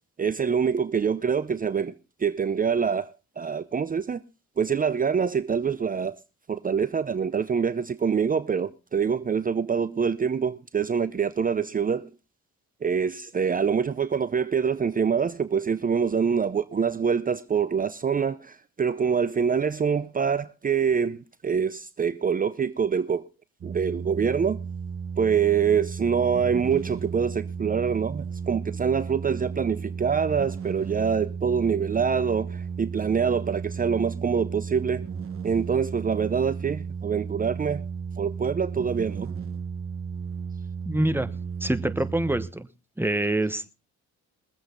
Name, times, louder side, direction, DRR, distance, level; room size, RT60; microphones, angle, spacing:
voice 1, 0.2-1.9 2.2-4.2 4.6-6.2 6.5-12.1 12.8-21.2 21.4-23.2 23.6-24.6 25.2-35.1 35.4-37.9 38.2-39.3, right 6 dB, 30° right, 0.6 m, -25 dB
sound 1, 23.6-42.5, right 6 dB, 45° right, 1.3 m, -34 dB
voice 2, 40.9-41.3 41.6-42.7 43.0-43.7, right 1 dB, 5° right, 1.1 m, -25 dB
22.5 x 7.9 x 3.9 m
cardioid pair, 90°, 30 cm